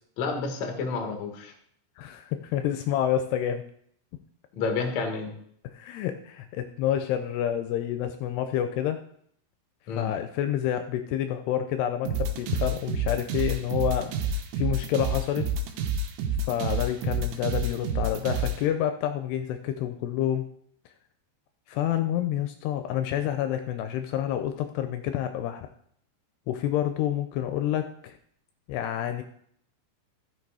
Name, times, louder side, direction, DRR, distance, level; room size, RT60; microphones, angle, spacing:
voice 1, 0.2-1.5 4.5-5.3 9.9-10.1, left 4 dB, 55° left, 4 dB, 2.2 m, -30 dB
voice 2, 2.0-3.6 5.7-9.0 9.9-15.5 16.4-20.4 21.7-25.7 26.5-28.2 28.7-29.2, left 10 dB, 80° left, 8 dB, 2.7 m, -28 dB
sound 1, 12.1-18.6, right 3 dB, 90° right, 3.2 m, -28 dB
13.5 x 6.6 x 4.8 m, 0.65 s
omnidirectional pair, 4.9 m